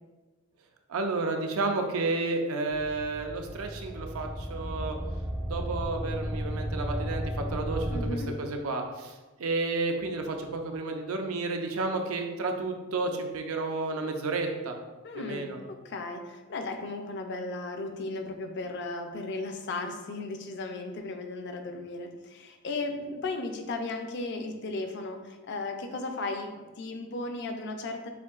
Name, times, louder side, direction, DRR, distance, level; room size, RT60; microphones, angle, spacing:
voice 1, 0.9-5.0 5.4-7.2 7.5-14.7 15.1-15.6, right 3 dB, 80° right, 4 dB, 0.5 m, -31 dB
sound 1, 2.7-8.1, equal, 20° right, 0.3 m, -34 dB
voice 2, 7.9-8.4 15.0-28.1, left 2 dB, 55° left, 5 dB, 0.5 m, -35 dB
6.9 x 2.6 x 2.4 m, 1.2 s
head